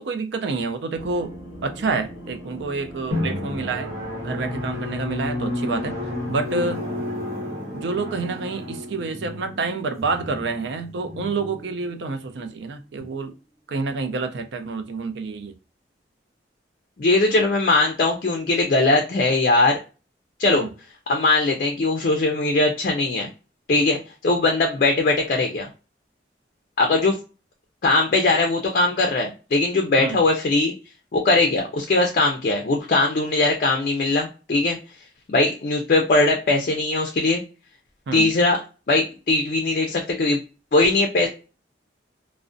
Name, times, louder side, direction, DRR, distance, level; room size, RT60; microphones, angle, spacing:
voice 1, 0.0-1.3 1.6-3.9 4.2-6.0 6.3-6.8 7.7-13.3 13.7-15.5 20.5-20.7 30.0-30.2 38.1-38.3, right 4 dB, 70° right, 0.4 m, -28 dB
sound 1, 1.0-6.7, equal, 20° right, 1.3 m, -41 dB
Drum, 3.1-12.4, left 1 dB, 55° right, 1.0 m, -31 dB
voice 2, 17.0-19.8 20.4-20.7 21.1-23.3 23.7-25.7 26.8-27.2 27.8-30.7 31.1-34.8 35.3-37.4 38.1-38.6 38.9-40.4 40.7-41.3, left 2 dB, 50° left, 0.4 m, -20 dB
2.4 x 2.1 x 2.5 m
head